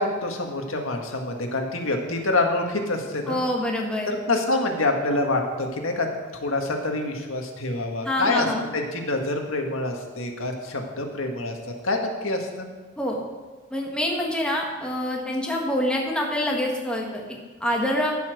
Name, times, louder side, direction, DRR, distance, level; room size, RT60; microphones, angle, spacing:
voice 1, 0.0-3.4 4.1-6.1 6.4-8.5 8.7-11.6 11.8-12.7, left 2 dB, 90° left, 3 dB, 1.8 m, -26 dB
voice 2, 3.3-4.1 8.0-8.7 13.0-13.2 13.7-18.1, left 1 dB, 5° left, -1 dB, 1.6 m, -26 dB
15.0 x 5.8 x 6.5 m, 1.4 s
head